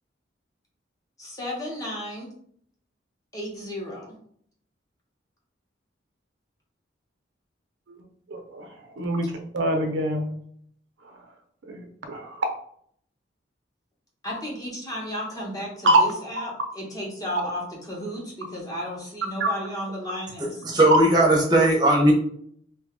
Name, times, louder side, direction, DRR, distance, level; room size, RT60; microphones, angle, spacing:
voice 1, 1.2-2.3 3.3-4.1 14.2-20.5, equal, 20° left, -3 dB, 0.7 m, -33 dB
voice 2, 8.3-8.7 9.0-10.3 11.7-12.5 15.8-16.1 19.4-19.5, right 1 dB, 75° right, 4 dB, 0.5 m, -24 dB
voice 3, 20.4-22.1, right 1 dB, 20° right, 0 dB, 0.6 m, -18 dB
2.7 x 2.2 x 3.5 m, 0.64 s
head